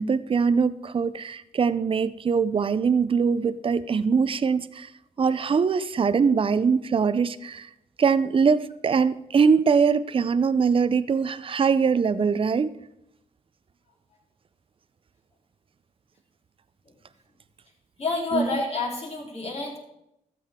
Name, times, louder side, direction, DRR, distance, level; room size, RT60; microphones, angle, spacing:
voice 1, 0.0-4.9 5.2-7.7 8.0-12.7 18.3-18.5, right 5 dB, 40° right, 14 dB, 0.5 m, -22 dB
voice 2, 18.0-19.8, left 3 dB, 45° left, -2 dB, 3.5 m, -28 dB
13.0 x 7.7 x 3.6 m, 0.84 s
cardioid pair, 65°, 14 cm